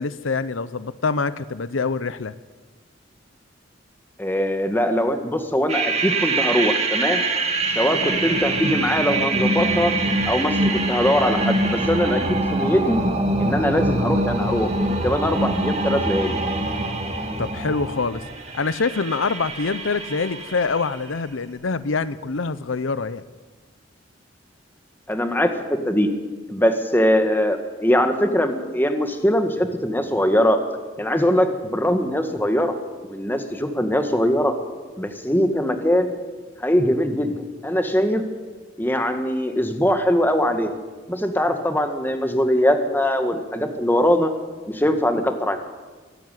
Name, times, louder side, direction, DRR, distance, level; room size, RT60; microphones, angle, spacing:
voice 1, 0.0-2.3 17.4-18.3 18.5-23.2, left 4 dB, 85° left, 15 dB, 0.8 m, -25 dB
voice 2, 4.2-7.2 7.8-10.0 10.3-12.2 12.5-13.0 13.4-16.4 25.1-26.1 26.5-30.6 31.0-32.7 33.0-34.5 35.0-36.1 36.6-37.3 37.6-38.2 38.8-40.7 41.1-44.3 44.7-45.6, equal, 10° left, 6 dB, 1.8 m, -21 dB
sound 1, 5.7-21.0, right 2 dB, 35° right, 2.7 m, -24 dB
24.0 x 12.5 x 9.4 m, 1.4 s
head